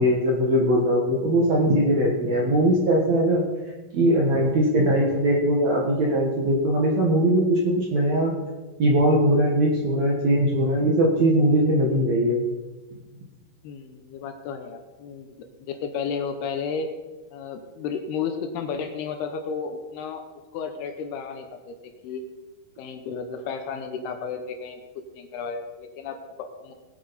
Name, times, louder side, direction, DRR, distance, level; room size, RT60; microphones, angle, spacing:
voice 1, 0.0-3.4 3.9-8.3 8.8-12.4, right 1 dB, 60° right, -2 dB, 2.0 m, -20 dB
voice 2, 13.6-16.9 17.3-20.3 20.5-21.8 22.0-22.3 22.8-24.8 25.2-26.7, left 6 dB, 75° left, 6 dB, 2.6 m, -33 dB
19.5 x 8.4 x 4.2 m, 1.2 s
omnidirectional pair, 5.1 m